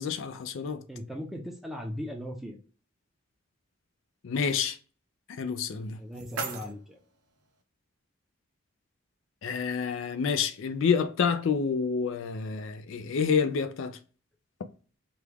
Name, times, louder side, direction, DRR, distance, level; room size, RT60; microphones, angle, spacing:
voice 1, 0.0-0.8 4.2-4.8 5.3-6.0 9.4-14.0, left 6 dB, 65° left, 0.4 m, -28 dB
voice 2, 0.9-2.6 6.0-7.0, equal, ahead, 0.5 m, -38 dB
sound 1, 5.6-7.6, right 4 dB, 85° right, 0.6 m, -40 dB
3.0 x 2.3 x 3.3 m
head